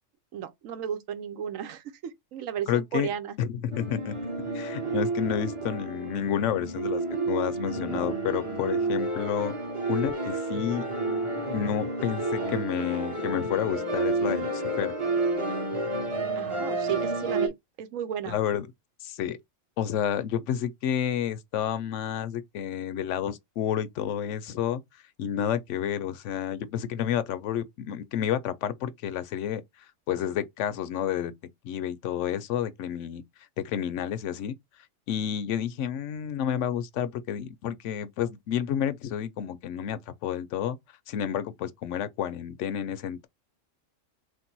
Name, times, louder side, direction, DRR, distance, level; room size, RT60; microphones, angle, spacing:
voice 1, 0.3-3.3 16.4-18.4, right 9 dB, 85° right, 1.1 m, -34 dB
voice 2, 2.7-3.1 3.4-4.2 4.5-9.5 9.9-10.9 11.5-14.9 18.3-18.7 19.0-19.4 19.8-24.8 25.2-29.6 30.1-31.3 31.6-33.2 33.6-34.5 35.1-40.8 41.1-43.3, left 9 dB, 75° left, 0.9 m, -30 dB
sound 1, 3.7-17.5, right 2 dB, 30° right, 0.8 m, -30 dB
3.3 x 2.6 x 4.4 m
omnidirectional pair, 1.3 m